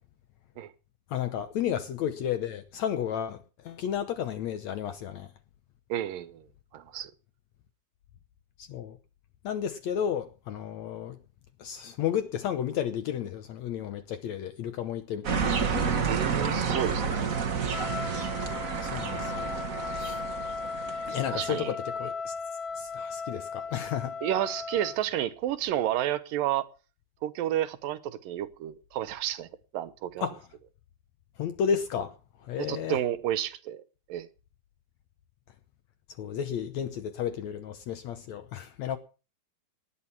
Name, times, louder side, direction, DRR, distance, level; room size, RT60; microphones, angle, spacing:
voice 1, 1.1-5.3 8.6-9.0 9.4-11.2 11.6-15.5 18.7-19.5 20.0-20.2 21.1-22.3 22.8-24.2 30.2-30.4 31.4-32.2 32.4-33.0 36.2-39.0, left 8 dB, 70° left, 1.8 m, -32 dB
voice 2, 5.9-6.4 6.7-7.1 16.1-17.3 20.9-21.7 24.2-26.7 27.2-29.5 29.7-30.3 32.6-33.8 34.1-34.3, right 12 dB, 75° right, 2.5 m, -31 dB
sound 1, 15.2-21.5, right 5 dB, 55° right, 0.9 m, -30 dB
Trumpet, 17.6-25.0, left 4 dB, 55° left, 1.5 m, -36 dB
18.5 x 10.5 x 5.8 m
omnidirectional pair, 4.1 m